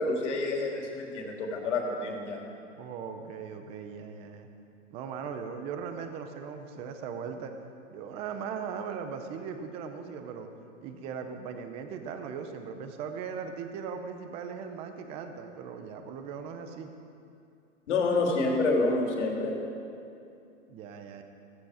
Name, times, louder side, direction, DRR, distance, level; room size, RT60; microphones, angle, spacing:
voice 1, 0.0-2.4 17.9-19.6, left 3 dB, 65° left, 0 dB, 3.4 m, -28 dB
voice 2, 2.8-4.5 4.9-7.5 7.9-10.5 10.8-16.9 20.7-21.2, right 6 dB, 15° right, 7 dB, 0.6 m, -39 dB
15.5 x 15.5 x 4.9 m, 2.6 s
hypercardioid pair, 165°, 39 cm